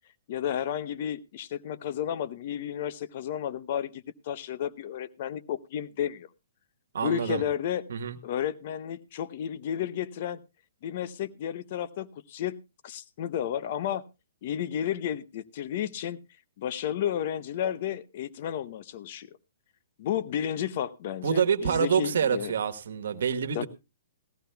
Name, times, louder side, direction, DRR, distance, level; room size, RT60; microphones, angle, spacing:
voice 1, 0.3-6.3 7.0-7.8 8.2-10.4 10.8-12.6 12.8-14.0 14.4-16.2 16.6-19.3 20.0-22.5 23.5-23.7, left 10 dB, 45° left, 15 dB, 0.7 m, -32 dB
voice 2, 6.9-7.4 7.9-8.2 21.2-23.7, right 7 dB, 70° right, 8 dB, 1.3 m, -27 dB
18.0 x 14.5 x 2.2 m, 0.26 s
hypercardioid pair, 155°, 0 cm